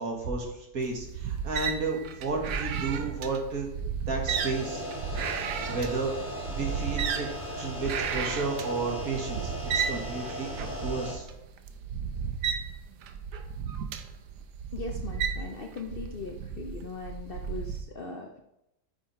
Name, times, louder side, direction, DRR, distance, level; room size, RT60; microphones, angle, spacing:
voice 1, 0.0-3.7 4.0-4.8 5.7-7.3 7.6-11.3, right 3 dB, 60° right, 1 dB, 2.1 m, -32 dB
sound 1, 0.8-17.8, right 7 dB, 85° right, 1.4 m, -34 dB
sound 2, 4.3-11.1, equal, 30° right, 4.0 m, -37 dB
voice 2, 14.7-18.4, left 4 dB, 50° left, 2 dB, 0.7 m, -39 dB
9.5 x 6.2 x 4.4 m, 0.84 s
omnidirectional pair, 1.7 m